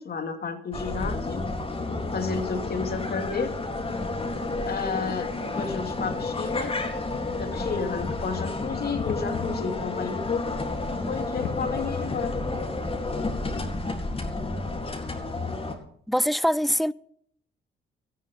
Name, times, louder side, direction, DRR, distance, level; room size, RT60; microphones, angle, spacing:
voice 1, 0.0-1.4 2.1-3.5 4.7-6.7 7.3-10.5 10.9-12.3, left 5 dB, 50° left, 2.7 m, -32 dB
sound 1, 0.7-15.7, left 2 dB, 30° left, 3.8 m, -31 dB
sound 2, 8.7-10.1 10.4-10.5 10.8-10.9 11.4-12.0 12.7-12.8, left 8 dB, 75° left, 1.7 m, -35 dB
voice 2, 16.1-16.9, equal, ahead, 0.5 m, -23 dB
18.0 x 13.0 x 3.9 m
cardioid pair, 90°, 20 cm